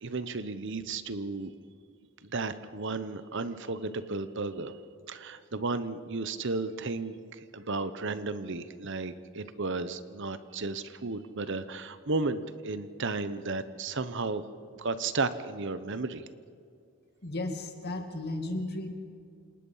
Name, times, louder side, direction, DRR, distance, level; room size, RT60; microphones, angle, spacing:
voice 1, 0.0-1.5 2.2-4.8 5.1-14.4 14.8-16.2, right 3 dB, 55° right, 13 dB, 0.9 m, -34 dB
voice 2, 17.2-18.9, left 2 dB, 45° left, 5 dB, 2.2 m, -34 dB
28.0 x 19.0 x 5.7 m, 2.3 s
head